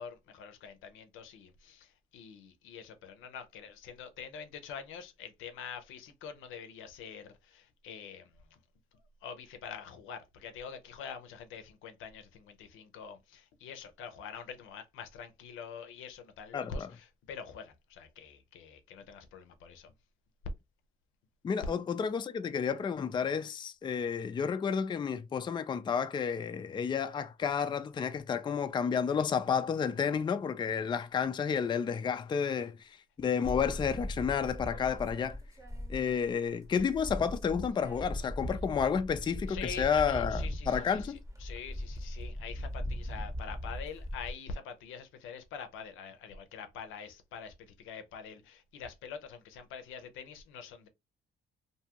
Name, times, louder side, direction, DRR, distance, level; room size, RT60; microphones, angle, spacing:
voice 1, 0.0-8.6 9.2-19.9 39.5-50.9, left 6 dB, 85° left, 0.6 m, -45 dB
voice 2, 16.5-16.9 21.4-35.4 35.9-41.2, left 6 dB, 25° left, 0.3 m, -31 dB
sound 1, 33.4-36.3 36.6-44.3, equal, 15° right, 0.8 m, -39 dB
2.7 x 2.3 x 2.8 m
cardioid pair, 90°, 20 cm